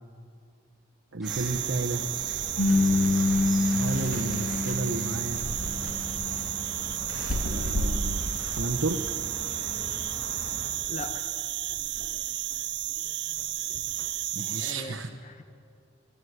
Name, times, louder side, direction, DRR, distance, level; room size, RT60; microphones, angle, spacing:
voice 1, 1.1-2.0 3.7-5.4 7.5-9.0 14.3-15.1, right 2 dB, 80° right, 3 dB, 1.1 m, -32 dB
sound 1, 1.2-10.7, equal, ahead, 4.5 m, -41 dB
sound 2, 1.2-14.7, right 14 dB, 60° right, 0.7 m, -33 dB
sound 3, 2.6-8.4 8.9-9.0, left 2 dB, 85° left, 2.7 m, -27 dB
voice 2, 10.9-11.3 14.6-15.4, left 2 dB, 35° left, 8 dB, 1.3 m, -39 dB
23.5 x 13.0 x 9.6 m, 2.4 s
head